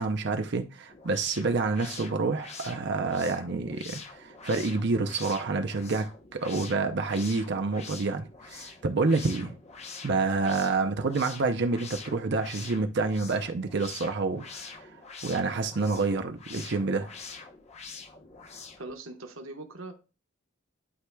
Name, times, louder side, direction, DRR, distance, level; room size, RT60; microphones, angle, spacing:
voice 1, 0.0-6.1 6.3-9.5 10.0-14.4 14.8-14.9 15.2-17.1, right 3 dB, 60° right, 0.6 m, -28 dB
sound 1, 0.9-18.9, left 5 dB, 35° left, 0.8 m, -45 dB
voice 2, 18.5-19.9, right 2 dB, 85° right, 1.3 m, -42 dB
11.0 x 4.7 x 2.3 m
head